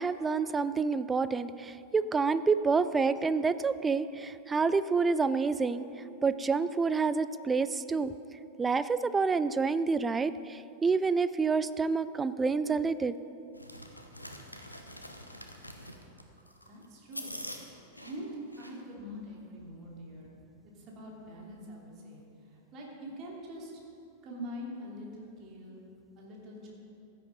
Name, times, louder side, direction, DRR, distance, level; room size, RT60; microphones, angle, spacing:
voice 1, 0.0-5.9 6.2-8.1 8.6-13.1, right 4 dB, 15° right, 14 dB, 0.4 m, -28 dB
sound 1, 13.5-18.8, equal, 85° left, 0.9 m, -45 dB
voice 2, 16.6-17.3 18.0-20.3 20.6-23.7 24.2-25.8 26.2-26.7, equal, 35° right, -3 dB, 3.0 m, -44 dB
15.5 x 9.8 x 3.8 m, 2.6 s
figure-of-eight pair, 90°, 0 cm